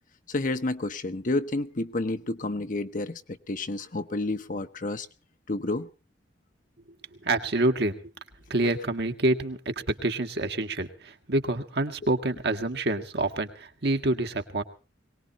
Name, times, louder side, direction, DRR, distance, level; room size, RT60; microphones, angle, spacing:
voice 1, 0.3-5.1 5.5-5.9 12.0-12.1, left 2 dB, 50° left, 10 dB, 1.0 m, -30 dB
voice 2, 7.3-7.9 8.5-9.6 9.9-14.6, right 2 dB, 65° right, 5 dB, 1.8 m, -27 dB
22.5 x 19.0 x 3.0 m, 0.35 s
head